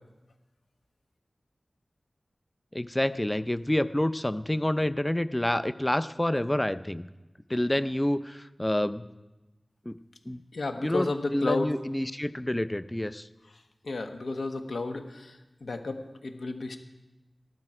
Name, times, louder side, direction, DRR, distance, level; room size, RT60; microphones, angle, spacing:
voice 1, 2.7-7.1 7.5-9.1 9.9-10.0 10.3-10.4 10.8-13.3, left 1 dB, 15° left, 14 dB, 0.5 m, -28 dB
voice 2, 10.5-11.7 13.8-16.8, left 3 dB, 85° left, 6 dB, 1.1 m, -32 dB
14.5 x 12.0 x 4.9 m, 1.1 s
wide cardioid pair, 80°, 0 cm